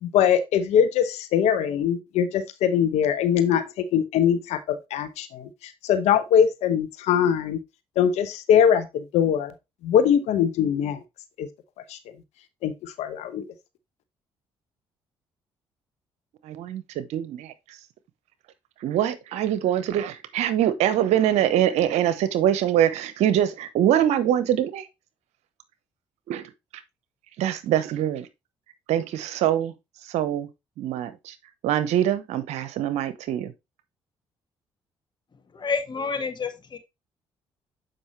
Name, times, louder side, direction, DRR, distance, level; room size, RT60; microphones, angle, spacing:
voice 1, 0.0-7.6 8.0-9.5 9.8-11.0 11.4-11.5 11.9-12.0 12.6-13.4, left 8 dB, 75° left, 0.9 m, -22 dB
voice 2, 16.4-17.5 18.8-24.9 26.3-26.5 27.4-28.3 28.9-29.7 30.1-30.5 30.8-31.3 31.6-33.5, right 11 dB, 75° right, 0.9 m, -24 dB
voice 3, 35.6-36.8, left 4 dB, 40° left, 1.9 m, -29 dB
7.7 x 5.3 x 3.2 m
hypercardioid pair, 55°, 12 cm